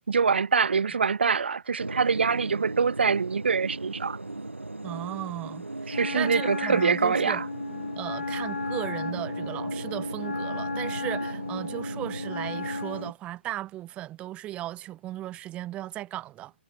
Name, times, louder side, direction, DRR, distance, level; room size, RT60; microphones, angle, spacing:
voice 1, 0.1-4.2 5.9-7.5, right 5 dB, 65° right, 1.9 m, -24 dB
sound 1, 1.8-13.1, right 2 dB, 85° right, 7.1 m, -37 dB
voice 2, 4.8-7.4 7.9-16.5, right 14 dB, 20° right, 6.3 m, -36 dB
Wind instrument woodwind instrument, 5.9-13.1, left 4 dB, 75° left, 5.8 m, -35 dB
figure-of-eight pair, 135°, 6 cm